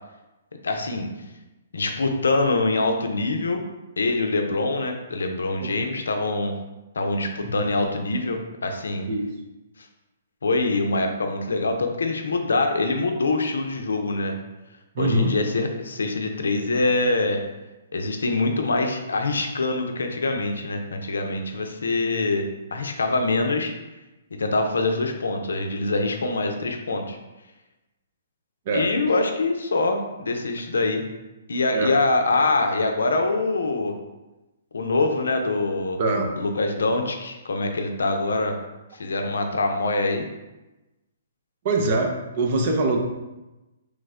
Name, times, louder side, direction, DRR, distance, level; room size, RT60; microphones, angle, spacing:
voice 1, 0.6-1.1 1.7-3.6 4.0-6.5 7.0-9.1 10.4-14.4 15.0-17.4 17.9-22.5 22.7-23.7 24.4-27.2 28.7-31.0 31.5-33.9 34.7-36.0 36.4-38.6 39.0-40.3, left 2 dB, 85° left, 4 dB, 0.4 m, -24 dB
voice 2, 14.9-15.3 28.7-28.9 31.7-31.9 36.0-36.3 41.6-43.0, right 2 dB, 50° right, 2 dB, 0.5 m, -23 dB
3.2 x 2.0 x 3.5 m, 1.0 s
hypercardioid pair, 140°, 0 cm